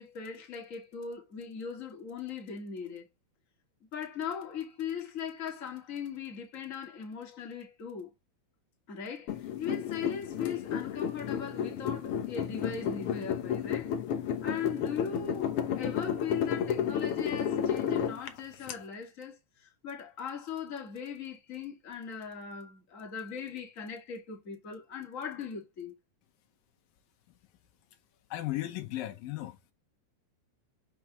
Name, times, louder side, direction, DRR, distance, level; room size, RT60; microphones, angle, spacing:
voice 1, 0.0-3.1 3.9-8.1 8.9-14.0 14.4-25.9, left 7 dB, 25° left, 2.1 m, -39 dB
sound 1, 9.3-18.7, left 8 dB, 70° left, 1.4 m, -32 dB
voice 2, 28.3-29.7, left 15 dB, 90° left, 3.0 m, -36 dB
7.7 x 6.0 x 3.1 m
omnidirectional pair, 3.9 m